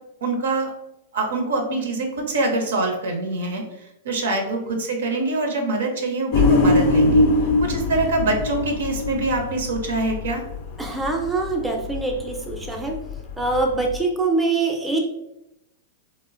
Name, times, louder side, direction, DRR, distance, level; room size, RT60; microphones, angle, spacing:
voice 1, 0.2-0.7 1.1-3.6 4.0-7.2 7.6-10.4, right 2 dB, 75° right, 3 dB, 0.6 m, -24 dB
voice 2, 4.5-4.8 10.8-13.0 13.4-15.0, right 3 dB, 5° right, 0 dB, 0.5 m, -24 dB
sound 1, 6.3-14.0, left 2 dB, 50° left, 0.4 m, -22 dB
3.0 x 2.1 x 2.5 m, 0.85 s
hypercardioid pair, 110°, 0 cm